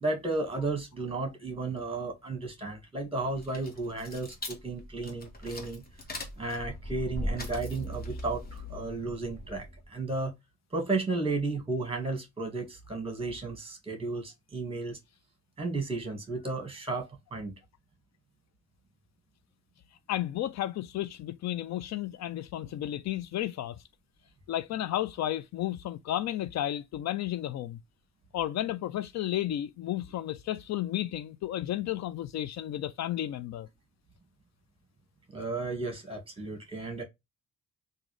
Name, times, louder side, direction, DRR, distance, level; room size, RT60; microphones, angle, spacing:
voice 1, 0.0-5.8 6.4-10.3 10.7-15.0 15.6-17.6 35.3-37.0, right 3 dB, 20° right, 1.8 m, -33 dB
sound 1, 3.3-9.9, left 1 dB, 30° left, 1.4 m, -39 dB
voice 2, 20.1-23.8 24.5-27.8 28.3-33.7, left 12 dB, 65° left, 0.4 m, -33 dB
3.7 x 2.7 x 3.1 m
cardioid pair, 90°, 30 cm